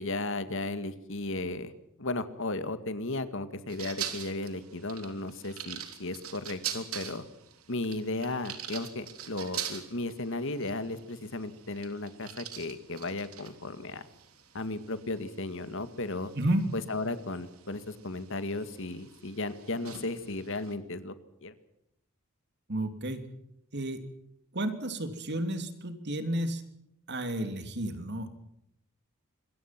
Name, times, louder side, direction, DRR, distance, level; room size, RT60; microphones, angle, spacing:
voice 1, 0.0-1.7 2.0-7.2 7.7-14.1 14.5-16.3 16.7-21.1 21.4-21.5, left 2 dB, 60° left, 11 dB, 2.0 m, -35 dB
sound 1, 3.7-20.7, right 10 dB, 90° right, 3.3 m, -44 dB
voice 2, 16.3-16.7 22.7-23.2 23.7-24.0 24.5-26.6 27.1-28.4, right 1 dB, 50° right, 8 dB, 3.0 m, -31 dB
26.5 x 22.0 x 6.0 m, 0.80 s
head